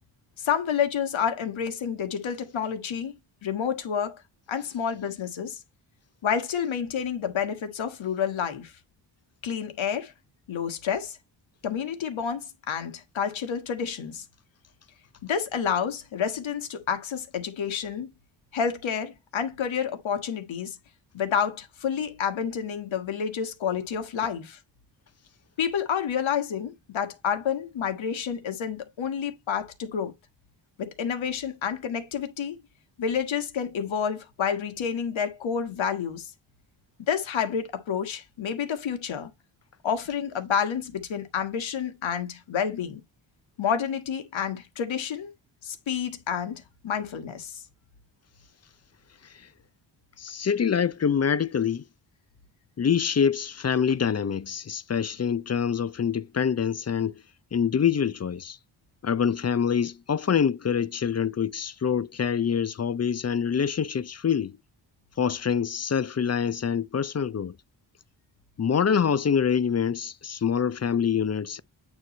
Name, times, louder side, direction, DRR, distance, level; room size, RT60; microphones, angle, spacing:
voice 1, 0.4-4.2 4.5-5.6 6.2-8.7 9.4-10.1 10.5-11.2 11.6-14.2 15.2-18.1 18.5-20.8 21.1-24.6 25.6-30.1 30.8-32.6 33.0-36.3 37.1-39.3 39.8-43.0 43.6-45.3 45.6-47.6, left 7 dB, 80° left, 1.5 m, -29 dB
voice 2, 50.2-51.8 52.8-57.1 57.5-58.6 59.0-64.5 65.2-67.6 68.6-71.6, left 7 dB, 35° left, 0.6 m, -25 dB
8.8 x 3.1 x 4.0 m
cardioid pair, 55°, 46 cm